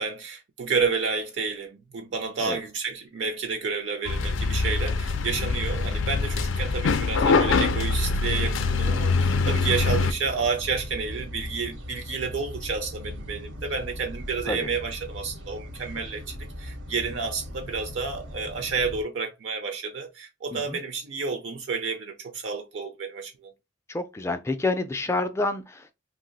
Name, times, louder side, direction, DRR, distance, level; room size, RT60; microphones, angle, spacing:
voice 1, 0.0-23.5, right 5 dB, 70° right, 0.4 m, -30 dB
sound 1, 4.0-10.1, left 4 dB, 85° left, 0.4 m, -24 dB
sound 2, 4.1-19.0, equal, 85° right, 0.9 m, -38 dB
voice 2, 23.9-25.9, left 2 dB, 15° left, 0.3 m, -29 dB
2.7 x 2.0 x 3.8 m
head